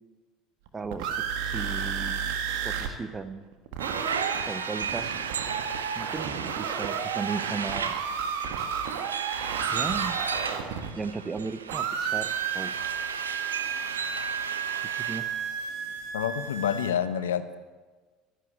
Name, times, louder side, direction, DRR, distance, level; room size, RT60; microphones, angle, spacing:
voice 1, 0.7-1.1 1.4-2.3 2.6-3.5 4.5-5.2 5.9-7.9 9.7-10.2 11.0-12.8 15.0-15.3, right 4 dB, 25° right, 11 dB, 1.1 m, -36 dB
sound 1, 0.7-2.9 3.2-3.3 3.5-11.4 11.7-16.9, right 7 dB, 70° right, 1.5 m, -32 dB
sound 2, 3.8-15.2, right 6 dB, 90° right, 0.8 m, -34 dB
voice 2, 16.1-17.6, left 9 dB, 80° left, 12 dB, 0.8 m, -28 dB
13.5 x 10.5 x 8.2 m, 1.4 s
hypercardioid pair, 70°, 0 cm